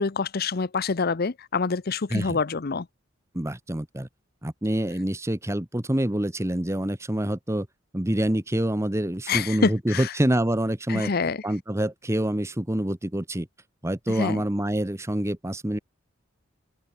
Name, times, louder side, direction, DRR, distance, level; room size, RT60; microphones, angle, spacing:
voice 1, 0.0-2.9 9.3-10.1 10.9-11.4 14.1-14.4, left 4 dB, 50° left, 0.7 m, -26 dB
voice 2, 3.3-4.1 4.4-7.7 7.9-11.1 11.4-13.5 13.8-15.8, right 1 dB, 15° right, 1.1 m, -26 dB
open air
head